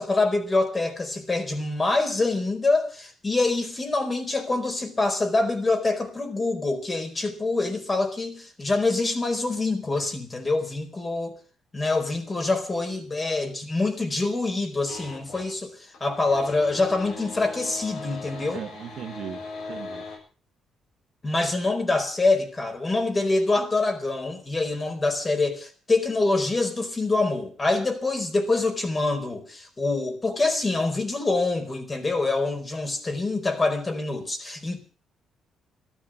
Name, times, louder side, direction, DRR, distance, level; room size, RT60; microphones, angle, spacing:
voice 1, 0.0-11.3 11.7-18.6 21.2-34.8, left 3 dB, 25° left, 6 dB, 4.6 m, -25 dB
sound 1, 14.9-15.5 15.9-20.2, left 4 dB, 70° left, 7.3 m, -39 dB
voice 2, 18.3-19.4 19.7-20.0, right 9 dB, 70° right, 7 dB, 1.8 m, -38 dB
13.5 x 13.0 x 7.6 m, 0.40 s
cardioid pair, 90°, 0 cm